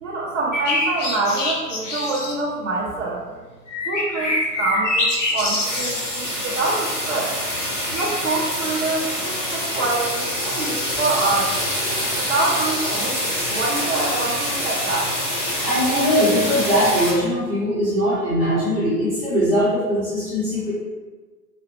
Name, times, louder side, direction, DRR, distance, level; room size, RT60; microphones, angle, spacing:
voice 1, 0.0-3.3 3.8-7.3 7.9-11.5 12.1-15.1, right 3 dB, 50° right, -5 dB, 0.8 m, -25 dB
sound 1, 0.5-2.4 3.7-6.2 7.9-8.1, left 2 dB, 50° left, 0.8 m, -25 dB
sound 2, 5.4-17.1, equal, 15° left, 0.7 m, -26 dB
voice 2, 15.6-20.7, equal, 15° right, -12 dB, 1.0 m, -20 dB
4.9 x 2.4 x 3.1 m, 1.3 s
figure-of-eight pair, 120°, 50 cm